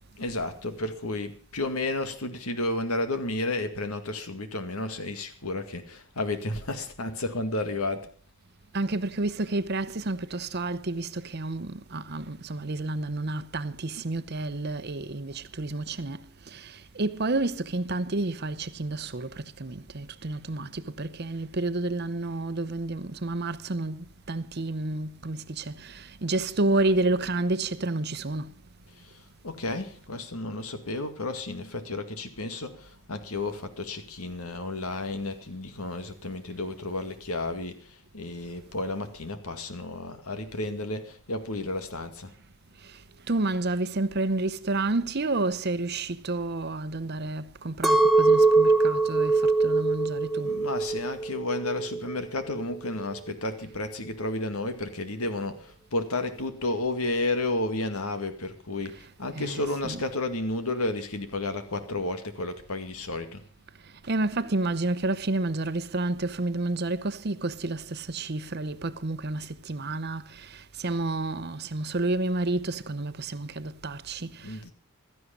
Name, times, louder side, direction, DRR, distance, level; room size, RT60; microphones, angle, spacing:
voice 1, 0.2-8.1 29.4-37.8 38.1-42.3 50.4-63.4 74.4-74.7, left 2 dB, 85° left, 2.2 m, -32 dB
voice 2, 8.7-28.5 42.8-50.5 58.9-60.1 63.8-74.7, right 2 dB, 50° right, 0.8 m, -30 dB
Chink clink, 47.8-52.1 52.6-53.2, right 3 dB, ahead, 1.3 m, -23 dB
16.0 x 13.0 x 5.3 m
head